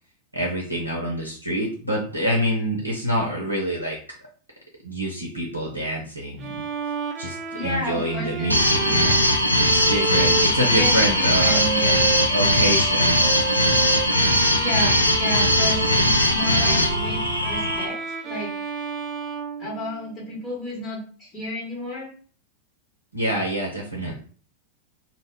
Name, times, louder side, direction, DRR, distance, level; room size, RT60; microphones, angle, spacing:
voice 1, 0.3-4.0 4.8-6.6 7.2-9.2 9.6-11.7 12.3-13.2 23.1-24.2, equal, 90° right, -2 dB, 0.5 m, -26 dB
Bowed string instrument, 6.4-20.3, right 6 dB, 30° right, 0.4 m, -31 dB
voice 2, 7.5-8.5 8.8-8.9 10.7-12.1 14.6-18.0 18.2-18.5 19.6-22.1, left 1 dB, 30° left, -4 dB, 1.1 m, -31 dB
sound 1, 8.5-17.8, left 1 dB, 85° left, 0.4 m, -20 dB
2.1 x 2.0 x 3.4 m, 0.44 s
figure-of-eight pair, 90°, 0 cm